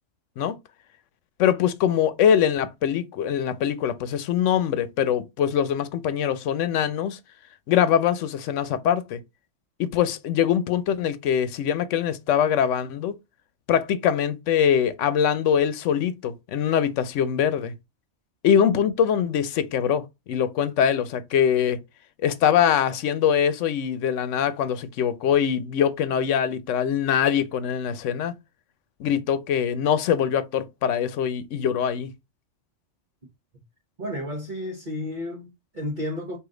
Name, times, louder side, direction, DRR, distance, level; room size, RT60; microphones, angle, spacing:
voice 1, 1.4-7.2 7.7-9.2 9.8-13.1 13.7-17.7 18.4-21.8 22.2-28.3 29.0-32.1, left 8 dB, 90° left, 1.0 m, -23 dB
voice 2, 34.0-36.4, left 1 dB, 45° right, 1.2 m, -32 dB
5.0 x 2.7 x 3.7 m
omnidirectional pair, 1.2 m